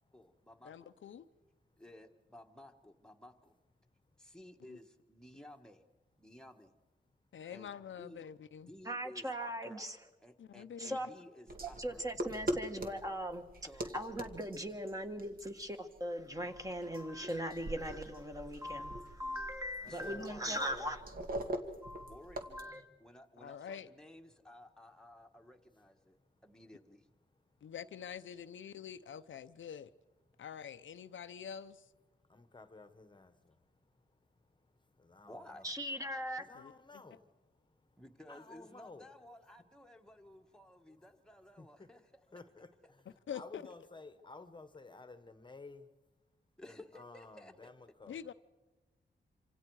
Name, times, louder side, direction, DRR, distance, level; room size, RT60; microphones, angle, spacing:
voice 1, 0.1-0.9 1.8-3.5 4.2-5.8 6.2-6.7 7.5-8.3 8.7-9.9 10.2-12.0 13.6-13.9 19.9-20.6 22.1-22.5 23.0-26.2 26.4-27.1 35.3-35.6 38.0-42.0 46.6-47.7, left 1 dB, 5° left, 1.4 m, -55 dB
voice 2, 0.6-1.3 4.7-4.8 7.3-8.7 10.4-11.0 20.2-20.3 23.4-23.9 27.6-29.9 30.4-31.9 36.5-37.0 43.3-43.6 48.1-48.3, left 8 dB, 85° left, 0.7 m, -46 dB
voice 3, 8.8-10.0 10.8-11.1 11.8-13.4 13.9-21.0 21.8-22.2 22.5-22.8 35.6-36.4, equal, 15° right, 1.7 m, -39 dB
voice 4, 11.5-11.8 19.8-20.9 32.3-33.5 35.0-35.7 36.4-37.2 38.3-39.1 41.6-41.9 42.3-43.0 43.3-45.9 46.6-48.2, left 3 dB, 25° left, 1.2 m, -53 dB
sound 1, 11.5-22.6, right 1 dB, 50° right, 2.0 m, -43 dB
26.5 x 26.0 x 4.8 m
wide cardioid pair, 125°, 19 cm